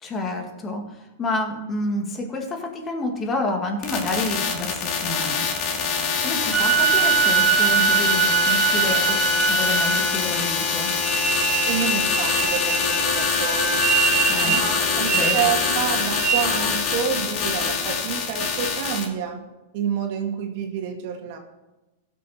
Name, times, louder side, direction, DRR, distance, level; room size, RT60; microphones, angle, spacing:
voice 1, 0.0-5.4 6.2-11.0 14.3-14.7 15.0-15.4, left 2 dB, 25° left, 3 dB, 1.9 m, -29 dB
sound 1, 3.8-19.0, left 5 dB, 45° left, 2.1 m, -24 dB
sound 2, 6.5-10.3 11.0-16.7, right 6 dB, 30° right, 1.4 m, -23 dB
voice 2, 11.6-13.8 14.5-19.4 19.7-21.4, right 7 dB, 55° right, 3 dB, 1.7 m, -28 dB
16.0 x 6.5 x 4.3 m, 1.0 s
hypercardioid pair, 125°, 0 cm